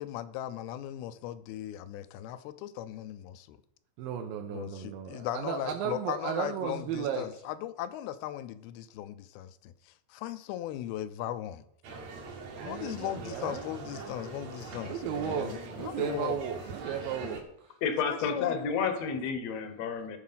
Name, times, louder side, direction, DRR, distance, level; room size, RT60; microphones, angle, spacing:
voice 1, 0.0-3.6 4.5-11.6 12.6-16.4 16.9-17.0 18.1-18.6, left 12 dB, 85° left, 12 dB, 2.5 m, -38 dB
voice 2, 4.0-7.3 12.6-13.7 14.8-17.5, right 8 dB, 80° right, 2 dB, 2.4 m, -35 dB
sound 1, 11.8-17.4, right 4 dB, 60° right, 2.0 m, -43 dB
voice 3, 17.8-20.2, left 6 dB, 70° left, 8 dB, 1.6 m, -30 dB
14.0 x 4.8 x 5.7 m, 0.74 s
omnidirectional pair, 4.4 m